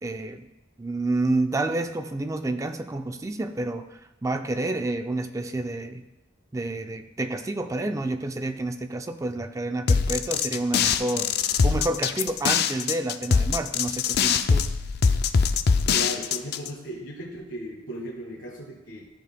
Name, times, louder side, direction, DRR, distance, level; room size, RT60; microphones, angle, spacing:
voice 1, 0.0-0.5 0.8-6.0 6.5-11.3 11.6-14.7, right 2 dB, 15° right, 8 dB, 0.4 m, -29 dB
sound 1, 9.9-16.7, left 5 dB, 55° left, 0.4 m, -22 dB
voice 2, 15.9-19.1, equal, 75° left, -3 dB, 1.3 m, -36 dB
13.5 x 7.1 x 2.2 m, 0.93 s
head